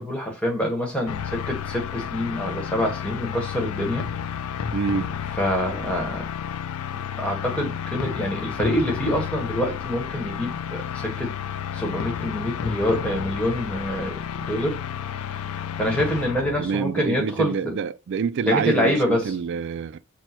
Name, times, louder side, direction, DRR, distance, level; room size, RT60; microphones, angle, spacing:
voice 1, 0.0-4.1 5.4-6.3 7.1-11.4 11.7-14.8 15.1-15.4 15.8-17.5 18.4-19.4, equal, 5° left, 1.2 m, -26 dB
sound 1, 1.1-16.7, left 8 dB, 90° left, 0.4 m, -31 dB
voice 2, 4.7-5.1 16.6-20.0, right 6 dB, 55° right, 0.3 m, -26 dB
6.1 x 2.2 x 2.9 m
head